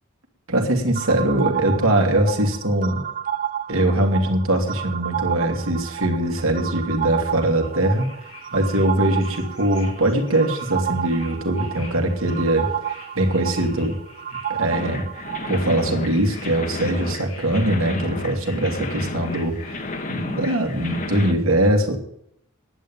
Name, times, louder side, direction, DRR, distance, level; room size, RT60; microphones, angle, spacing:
voice 1, 0.5-3.0 3.7-8.1 8.5-14.0 14.5-15.0 15.5-22.0, right 1 dB, 70° right, 3 dB, 2.8 m, -22 dB
sound 1, 0.9-15.7, right 10 dB, 40° right, 0.5 m, -31 dB
sound 2, 7.6-21.3, left 3 dB, 90° left, 6.3 m, -46 dB
sound 3, 14.7-21.3, left 2 dB, 40° left, 1.2 m, -32 dB
10.5 x 9.3 x 8.9 m, 0.70 s
head